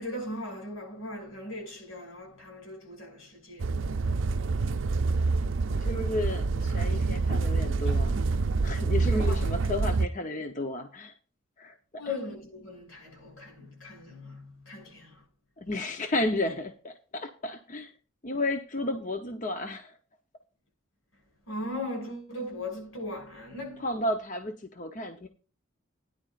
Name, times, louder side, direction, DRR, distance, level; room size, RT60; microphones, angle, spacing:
voice 1, 0.0-3.7 7.9-8.0 9.1-9.4 12.0-15.2 21.5-23.9, left 1 dB, 85° left, 6.9 m, -38 dB
sound 1, 3.6-10.1, right 3 dB, 70° right, 0.5 m, -27 dB
voice 2, 5.7-8.1 8.6-11.1 11.6-11.7 15.6-17.9 18.2-19.9 23.8-25.3, left 1 dB, 40° left, 0.9 m, -32 dB
16.5 x 10.5 x 2.5 m
head